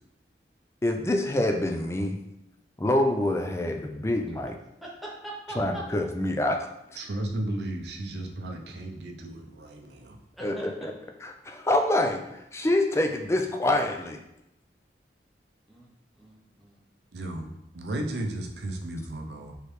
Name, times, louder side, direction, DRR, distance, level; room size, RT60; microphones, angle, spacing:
voice 1, 0.8-2.2 2.8-4.6 5.6-6.6 10.4-10.9 11.2-14.2, left 1 dB, 15° left, 4 dB, 0.4 m, -26 dB
voice 2, 4.8-5.8 10.4-10.9 15.7-15.9 16.2-16.8, right 2 dB, ahead, -4 dB, 0.8 m, -41 dB
voice 3, 7.0-10.2 17.1-17.5 17.7-19.5, right 1 dB, 75° right, 2 dB, 0.6 m, -34 dB
4.7 x 3.2 x 3.2 m, 0.85 s
head